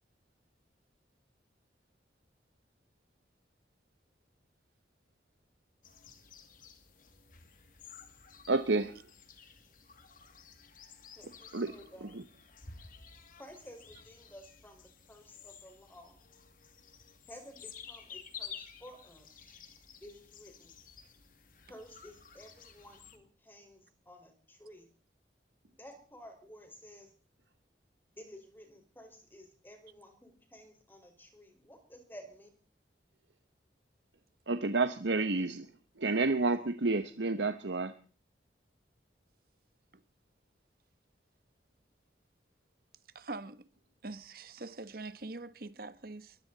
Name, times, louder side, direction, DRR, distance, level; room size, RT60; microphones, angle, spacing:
sound 1, 5.8-23.2, left 7 dB, 50° left, 2.4 m, -52 dB
voice 1, 8.5-9.0 11.5-11.7 12.1-12.2 34.5-35.7 36.0-37.9, right 3 dB, 85° right, 1.1 m, -30 dB
voice 2, 11.1-12.1 13.4-16.2 17.3-19.6 20.0-20.7 21.7-24.9 25.8-27.1 28.2-32.5, equal, 10° left, 4.8 m, -53 dB
voice 3, 43.1-43.7 44.0-46.4, right 2 dB, 55° right, 1.3 m, -43 dB
22.5 x 16.0 x 4.1 m
head